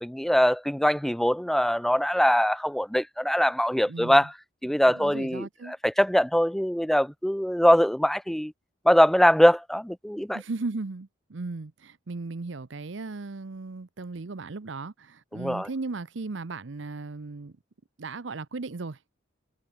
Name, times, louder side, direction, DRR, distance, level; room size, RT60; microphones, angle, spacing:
voice 1, 0.0-4.3 4.6-8.5 8.9-10.4 15.3-15.7, equal, ahead, 0.4 m, -22 dB
voice 2, 3.8-4.3 4.9-5.8 10.3-17.5 18.0-19.1, right 3 dB, 75° right, 0.7 m, -36 dB
head